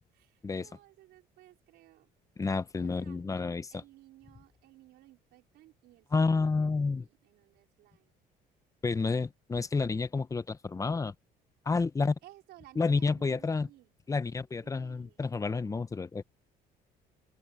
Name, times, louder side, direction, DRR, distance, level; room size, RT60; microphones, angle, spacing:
voice 1, 0.1-2.1 2.8-3.2 3.7-8.1 12.2-13.9 14.6-15.3, right 16 dB, 85° right, 4.6 m, -58 dB
voice 2, 2.4-3.7 6.1-7.1 8.8-11.1 11.7-12.2 12.8-13.7 14.1-16.2, left 4 dB, 20° left, 0.8 m, -30 dB
open air
cardioid pair, 110°, 17 cm